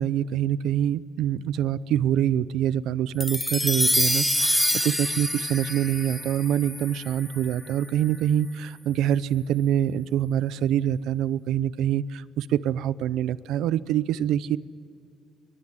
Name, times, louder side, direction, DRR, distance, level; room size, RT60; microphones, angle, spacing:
voice 1, 0.0-14.6, right 10 dB, 90° right, 18 dB, 0.7 m, -25 dB
sound 1, 3.2-7.7, left 1 dB, 5° left, 0.8 m, -26 dB
22.5 x 21.5 x 9.9 m, 2.4 s
cardioid pair, 90°, 0 cm